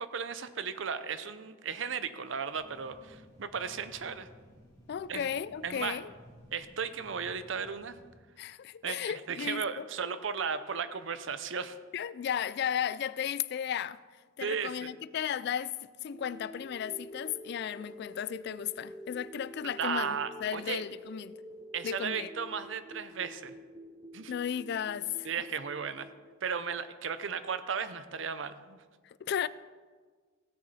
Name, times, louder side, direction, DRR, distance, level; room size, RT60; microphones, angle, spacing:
voice 1, 0.0-4.3 5.1-5.3 5.6-6.0 6.5-8.0 8.8-9.0 9.3-11.8 14.4-14.9 19.8-20.8 21.7-23.5 24.1-24.3 25.2-26.1 26.4-28.8, right 6 dB, 70° right, 0.6 m, -35 dB
sound 1, 2.5-8.1, left 1 dB, 20° left, 3.2 m, -56 dB
voice 2, 4.9-6.1 8.4-9.9 11.9-14.0 14.4-21.4 21.8-22.3 24.3-25.3 29.0-29.5, left 8 dB, 55° left, 0.3 m, -35 dB
sound 2, 16.1-26.1, equal, 20° right, 1.5 m, -48 dB
16.0 x 6.7 x 4.1 m
head